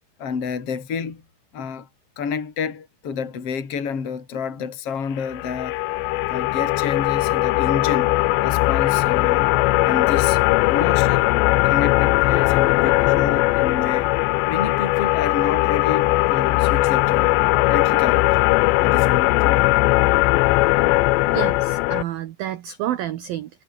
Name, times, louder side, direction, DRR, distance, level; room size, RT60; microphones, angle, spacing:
voice 1, 0.2-1.2 1.5-1.9 2.2-5.8 6.2-8.1 8.4-9.5 9.8-11.3 11.6-14.1 14.5-17.4 17.7-18.3 18.8-19.7, left 6 dB, 35° left, 4.1 m, -29 dB
sound 1, 5.2-22.0, left 20 dB, 80° left, 2.7 m, -19 dB
voice 2, 21.3-23.5, right 12 dB, 70° right, 2.4 m, -29 dB
omnidirectional pair, 5.5 m